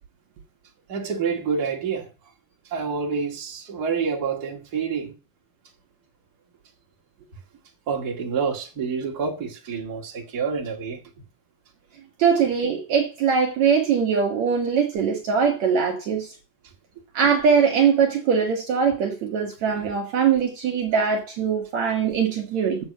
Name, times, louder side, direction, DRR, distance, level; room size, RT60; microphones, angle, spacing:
voice 1, 0.9-2.1 2.7-5.1 7.9-11.0, right 5 dB, 30° right, 2.3 m, -27 dB
voice 2, 12.2-16.3 17.1-22.8, right 6 dB, 60° right, 2.4 m, -21 dB
7.9 x 7.1 x 6.6 m
omnidirectional pair, 3.8 m